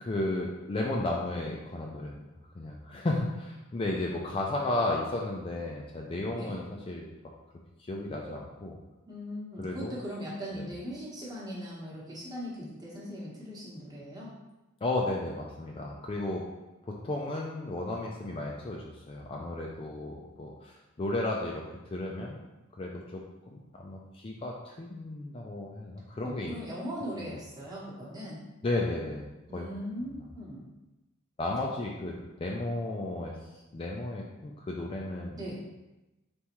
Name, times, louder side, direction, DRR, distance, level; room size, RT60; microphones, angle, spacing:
voice 1, 0.0-2.2 2.5-7.1 7.9-8.8 9.6-10.0 10.5-10.7 14.8-16.5 16.8-21.6 21.9-22.4 22.7-23.2 23.5-26.5 28.6-29.7 31.4-35.4, left 2 dB, 25° left, -1 dB, 0.4 m, -34 dB
voice 2, 9.1-14.3 26.2-28.4 29.5-30.7 35.4-35.6, equal, 20° right, -6 dB, 1.1 m, -39 dB
4.1 x 3.6 x 3.0 m, 1.0 s
head